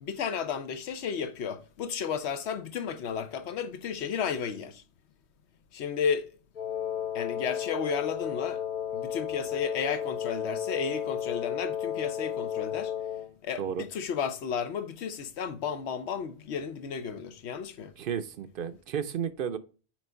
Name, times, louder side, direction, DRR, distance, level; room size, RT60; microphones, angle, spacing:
voice 1, 0.0-4.8 5.7-6.3 7.1-8.6 8.9-12.9 13.4-17.9, left 7 dB, 80° left, 1.0 m, -33 dB
Wind instrument woodwind instrument, 6.5-13.3, left 9 dB, 50° left, 1.0 m, -33 dB
voice 2, 18.0-19.6, right 8 dB, 60° right, 0.7 m, -32 dB
6.1 x 4.7 x 4.4 m
omnidirectional pair, 1.1 m